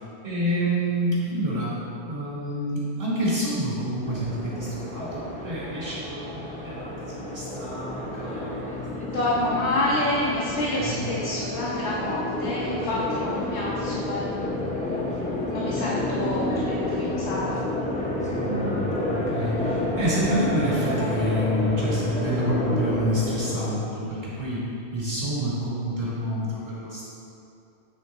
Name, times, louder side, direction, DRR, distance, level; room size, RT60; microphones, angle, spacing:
voice 1, 0.2-1.8 2.1-8.8 9.5-9.9 10.8-11.0 18.4-24.6 24.9-27.1, equal, 50° right, -8 dB, 1.8 m, -28 dB
sound 1, 4.0-23.9, left 1 dB, 10° left, 0.7 m, -30 dB
voice 2, 9.1-15.0 15.5-17.6, left 1 dB, 80° left, -7 dB, 1.2 m, -28 dB
8.6 x 3.4 x 4.1 m, 2.7 s
omnidirectional pair, 1.1 m